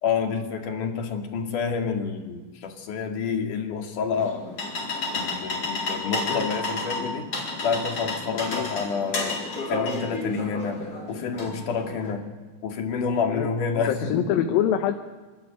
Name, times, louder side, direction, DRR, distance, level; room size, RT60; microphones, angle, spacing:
voice 1, 0.0-4.4 5.1-7.3 7.6-9.4 9.7-10.8 11.1-12.2 12.6-14.1, left 5 dB, 60° left, 4 dB, 3.7 m, -28 dB
sound 1, 4.1-12.1, left 2 dB, 40° left, 5.1 m, -31 dB
voice 2, 13.8-14.9, left 10 dB, 75° left, 7 dB, 2.7 m, -25 dB
28.5 x 12.5 x 9.1 m, 1.4 s
omnidirectional pair, 4.3 m